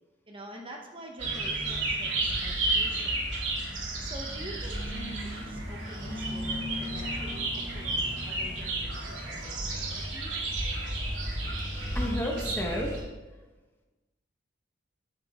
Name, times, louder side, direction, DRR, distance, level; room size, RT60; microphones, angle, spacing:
voice 1, 0.3-3.2 4.0-10.4, right 1 dB, 30° right, 1 dB, 0.9 m, -46 dB
sound 1, 1.2-13.0, right 2 dB, 80° right, 2.8 m, -32 dB
voice 2, 11.9-12.9, equal, 10° left, 0 dB, 1.1 m, -31 dB
9.3 x 7.6 x 3.6 m, 1.2 s
head